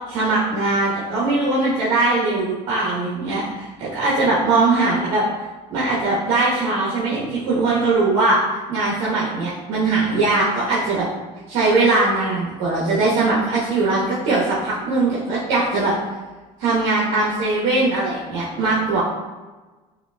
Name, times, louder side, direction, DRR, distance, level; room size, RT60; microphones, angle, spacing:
voice 1, 0.1-5.2 5.7-8.4 8.7-11.1 11.5-15.9 16.6-19.0, right 3 dB, 80° right, -8 dB, 1.1 m, -20 dB
5.7 x 2.9 x 2.2 m, 1.2 s
cardioid pair, 125°, 16 cm